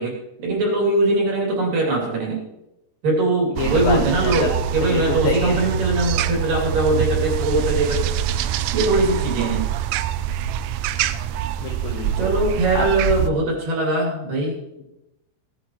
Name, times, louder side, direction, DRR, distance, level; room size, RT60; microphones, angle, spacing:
voice 1, 0.0-2.4 3.0-8.1 8.7-9.6 12.2-14.6, right 2 dB, 45° right, -1 dB, 3.9 m, -21 dB
voice 2, 3.6-4.5 4.8-5.6 11.6-12.3 12.7-12.9 14.8-14.9, left 4 dB, 85° left, 2 dB, 2.0 m, -27 dB
sound 1, 3.6-13.3, right 10 dB, 80° right, 3.0 m, -24 dB
17.0 x 12.0 x 3.1 m, 0.89 s
omnidirectional pair, 5.9 m